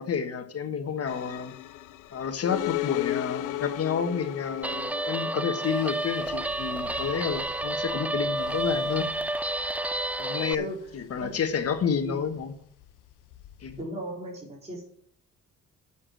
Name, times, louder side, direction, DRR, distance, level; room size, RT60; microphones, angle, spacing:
voice 1, 0.0-1.5 2.1-9.1 10.2-10.7 10.9-12.5 13.6-13.8, left 7 dB, 55° left, 1.4 m, -30 dB
sound 1, 1.1-13.8, left 15 dB, 90° left, 0.6 m, -38 dB
Guitar, 4.6-10.5, right 1 dB, 5° right, 0.3 m, -30 dB
voice 2, 13.8-14.8, right 1 dB, 20° right, 4.5 m, -36 dB
8.7 x 7.2 x 6.2 m
cardioid pair, 90°, 30 cm